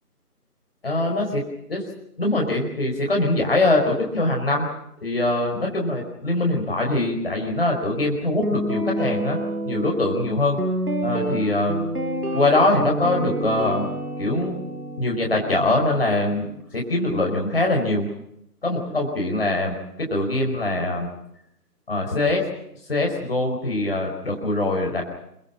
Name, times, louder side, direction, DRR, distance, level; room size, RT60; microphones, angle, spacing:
voice 1, 0.8-1.8 2.2-4.7 5.0-9.4 9.7-10.6 11.0-11.8 12.3-13.9 14.2-14.6 15.0-16.5 16.7-18.1 18.6-21.1 21.9-22.4 22.9-25.0, left 2 dB, 40° left, 0 dB, 4.9 m, -23 dB
Guitar, 8.4-16.6, right 1 dB, 70° right, 5.4 m, -28 dB
27.0 x 23.0 x 6.2 m, 0.78 s
figure-of-eight pair, 165°, 47 cm